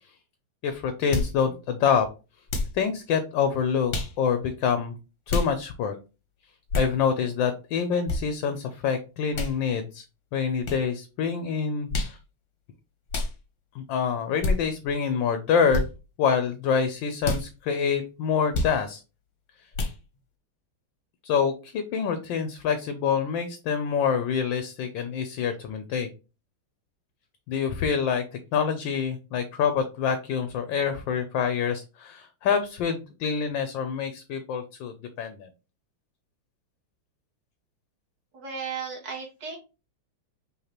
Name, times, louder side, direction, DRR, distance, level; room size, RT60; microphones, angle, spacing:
voice 1, 0.6-2.1 2.7-4.9 5.3-6.0 6.8-10.0 10.3-12.2 13.7-15.8 16.2-19.0 21.2-26.1 27.5-28.2 28.5-35.5, left 6 dB, 70° left, 8 dB, 1.2 m, -26 dB
sound 1, 1.1-1.3 2.5-2.8 3.9-4.1 5.3-5.5 6.7-6.9 8.1-8.2 9.3-9.5 10.6-10.8 11.9-12.2 13.1-13.3 14.4-14.6 15.7-15.9 17.2-17.4 18.5-18.7 19.7-20.0, left 2 dB, 50° left, 1.0 m, -27 dB
voice 2, 38.3-39.6, right 6 dB, 50° right, -2 dB, 2.3 m, -35 dB
5.6 x 3.2 x 2.9 m, 0.31 s
omnidirectional pair, 2.4 m